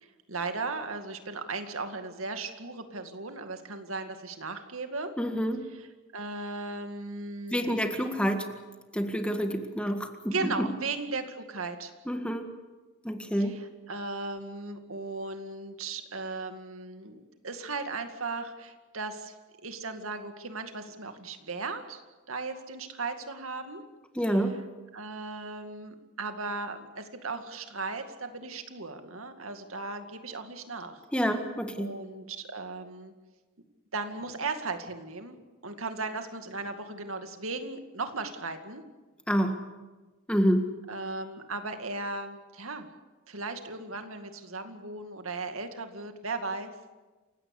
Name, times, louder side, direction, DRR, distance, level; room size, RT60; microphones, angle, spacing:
voice 1, 0.0-5.1 5.7-5.9 6.1-7.9 10.3-11.9 13.4-19.4 19.6-22.0 22.3-23.8 24.3-24.4 24.9-31.0 31.8-33.1 33.9-35.4 35.6-38.8 40.9-42.9 43.3-46.7, right 3 dB, 75° right, 7 dB, 2.3 m, -37 dB
voice 2, 5.2-5.6 7.5-8.5 8.9-10.5 12.1-12.5 13.0-13.6 24.2-24.6 31.1-31.9 39.3-39.6 40.3-40.7, equal, 5° left, 6 dB, 1.8 m, -28 dB
28.5 x 16.5 x 8.5 m, 1.2 s
head